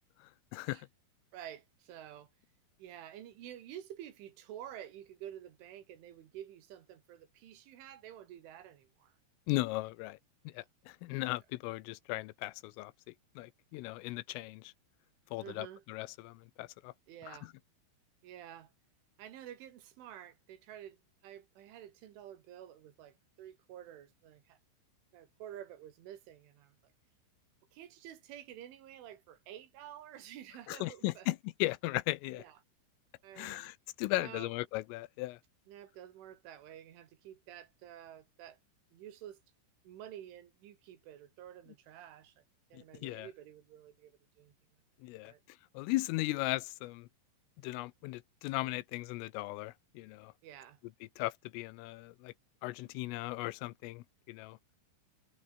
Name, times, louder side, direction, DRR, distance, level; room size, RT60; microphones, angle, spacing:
voice 1, 0.2-0.9 9.5-10.2 10.5-12.9 13.4-14.7 15.3-16.9 17.3-17.5 30.7-32.4 33.4-35.4 42.7-43.3 45.0-45.3 45.7-47.1 47.6-50.3 51.2-52.3 52.6-54.6, left 20 dB, 85° left, 3.4 m, -37 dB
voice 2, 1.3-2.3 2.8-9.1 15.4-15.8 17.1-17.5 18.2-18.7 19.2-24.6 25.1-26.9 27.7-31.3 32.3-32.6 33.2-33.7 34.1-34.5 35.7-38.6 38.9-39.4 39.8-42.4 42.7-44.5 45.2-45.4 50.4-50.8, right 11 dB, 70° right, 4.5 m, -50 dB
omnidirectional pair, 5.9 m